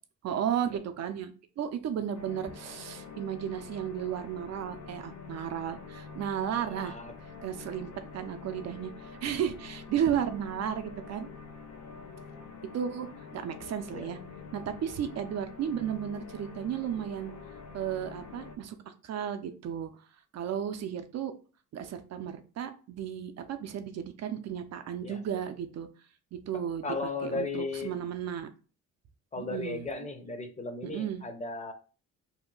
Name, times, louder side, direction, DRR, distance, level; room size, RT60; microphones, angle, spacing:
voice 1, 0.2-1.3 1.6-7.0 7.4-11.3 12.7-13.1 13.3-14.2 14.5-17.3 17.7-19.9 20.3-21.3 21.7-25.9 26.3-28.5 29.4-29.9 30.8-31.2, right 9 dB, 60° right, 8 dB, 0.5 m, -34 dB
sound 1, 2.1-18.5, left 5 dB, 70° left, 0.6 m, -46 dB
voice 2, 6.6-7.1 13.9-14.1 25.0-25.2 26.8-27.9 29.3-31.7, left 3 dB, 25° left, 6 dB, 0.7 m, -36 dB
2.8 x 2.1 x 3.8 m, 0.36 s
cardioid pair, 90°, 30 cm